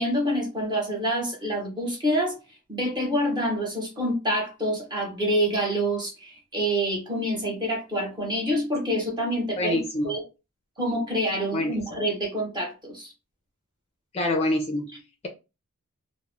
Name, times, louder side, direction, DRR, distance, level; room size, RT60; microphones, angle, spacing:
voice 1, 0.0-2.4 2.7-10.2 10.8-13.1, equal, 20° right, 1.0 m, -27 dB
voice 2, 9.6-10.2 11.5-11.8 14.1-15.3, left 1 dB, 30° left, 0.5 m, -27 dB
2.3 x 2.1 x 3.2 m
head